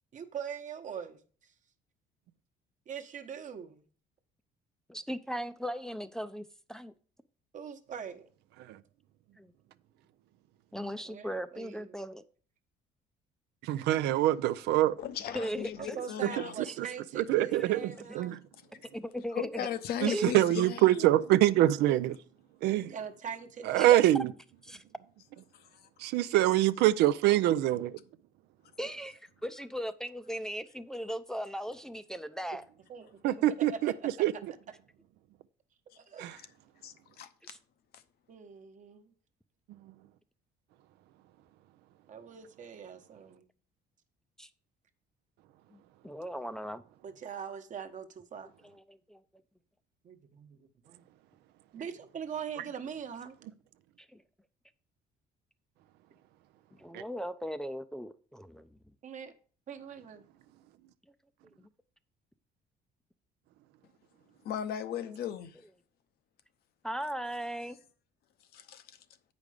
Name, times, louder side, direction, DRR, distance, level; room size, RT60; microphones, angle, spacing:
voice 1, 0.1-1.5 2.9-3.8 7.5-8.3 11.0-12.0 15.8-18.4 21.9-22.0 22.9-24.2 28.8-28.9 32.9-34.1 36.0-36.3 38.3-39.1 42.1-43.5 47.0-48.5 50.0-51.0 51.7-53.3 59.0-59.3 59.7-60.2, right 7 dB, 50° right, 1.1 m, -42 dB
voice 2, 4.9-6.9 9.4-9.5 10.7-12.2 15.3-16.1 16.7-16.9 17.8-18.2 18.9-19.7 20.1-20.3 20.9-21.1 23.8-24.0 24.7-24.8 28.8-32.6 37.5-37.6 44.4-44.5 45.7-46.8 48.7-49.2 54.1-54.2 56.8-58.7 61.6-61.7 66.8-67.8, equal, 5° left, 0.5 m, -38 dB
voice 3, 13.6-14.9 16.8-16.9 17.2-17.8 18.1-18.4 20.0-22.2 22.6-22.9 23.7-24.3 26.0-28.0 33.2-33.9 34.2-34.3 36.2-36.3 56.9-57.0, right 14 dB, 85° right, 0.5 m, -25 dB
voice 4, 15.0-16.6 18.7-18.9 19.3-20.9 25.5-26.1 36.8-37.6 64.4-65.6 68.5-68.8, left 9 dB, 70° left, 0.8 m, -37 dB
8.2 x 5.2 x 5.0 m
cardioid pair, 110°, 17 cm